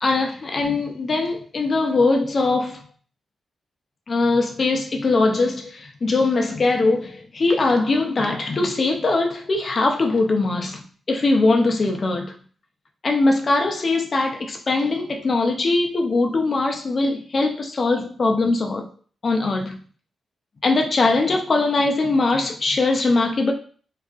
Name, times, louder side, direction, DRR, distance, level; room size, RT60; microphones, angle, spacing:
voice 1, 0.0-2.8 4.1-12.3 13.0-18.9 19.2-19.8 20.6-23.5, left 3 dB, 30° left, 3 dB, 0.4 m, -21 dB
2.6 x 2.3 x 2.3 m, 0.43 s
wide cardioid pair, 175°, 0 cm